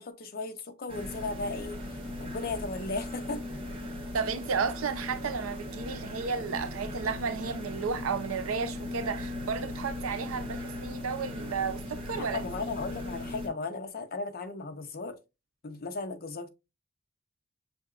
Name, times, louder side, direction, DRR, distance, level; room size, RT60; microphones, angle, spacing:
voice 1, 0.0-1.8 2.2-3.4 12.3-15.2 15.6-16.5, left 3 dB, 45° left, 0.6 m, -36 dB
sound 1, 0.9-13.5, left 1 dB, 25° right, 1.2 m, -38 dB
voice 2, 4.1-12.8, right 5 dB, 75° right, 0.5 m, -33 dB
6.0 x 2.8 x 2.4 m
head